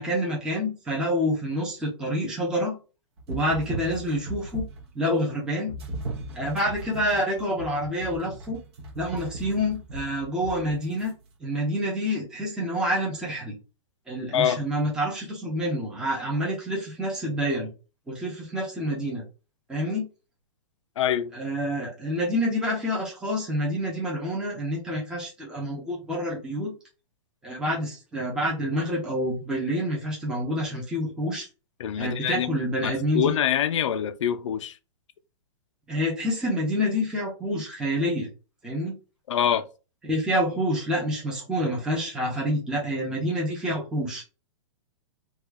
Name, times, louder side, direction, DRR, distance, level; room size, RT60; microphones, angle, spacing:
voice 1, 0.0-2.7 3.3-4.6 4.9-5.7 6.3-8.6 9.0-11.1 11.4-13.5 14.1-17.7 18.1-19.2 19.7-20.0 21.3-26.7 27.4-31.5 32.0-33.3 35.9-38.3 38.6-38.9 40.0-44.2, equal, 5° right, 0.7 m, -27 dB
sound 1, 3.2-4.9 5.7-11.1, right 2 dB, 55° right, 0.9 m, -37 dB
voice 2, 21.0-21.3 31.8-32.5 32.8-34.8 39.3-39.7, left 9 dB, 70° left, 0.5 m, -25 dB
2.8 x 2.4 x 3.5 m
hypercardioid pair, 165°, 16 cm